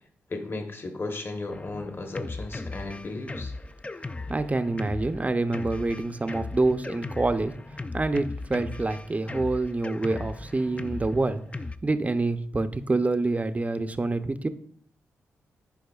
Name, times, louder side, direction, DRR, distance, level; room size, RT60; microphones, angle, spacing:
voice 1, 0.3-3.5, left 2 dB, 40° left, 5 dB, 1.1 m, -35 dB
Drum kit, 1.5-11.8, left 3 dB, 20° left, 0.4 m, -37 dB
voice 2, 4.3-7.5 7.9-11.4 11.8-14.5, right 2 dB, 25° right, 10 dB, 0.6 m, -26 dB
10.5 x 4.8 x 2.4 m, 0.62 s
supercardioid pair, 50°, 6 cm